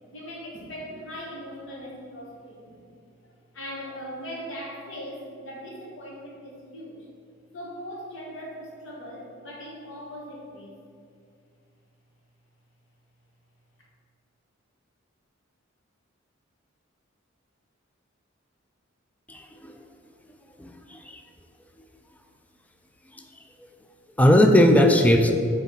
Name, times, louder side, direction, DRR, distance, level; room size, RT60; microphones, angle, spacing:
voice 1, 0.1-2.8 3.2-7.1 7.5-10.7, equal, 70° left, -2 dB, 1.5 m, -39 dB
voice 2, 19.3-19.8 20.6-21.2 24.2-25.3, left 1 dB, 10° left, 4 dB, 0.4 m, -18 dB
8.2 x 3.4 x 5.6 m, 2.3 s
head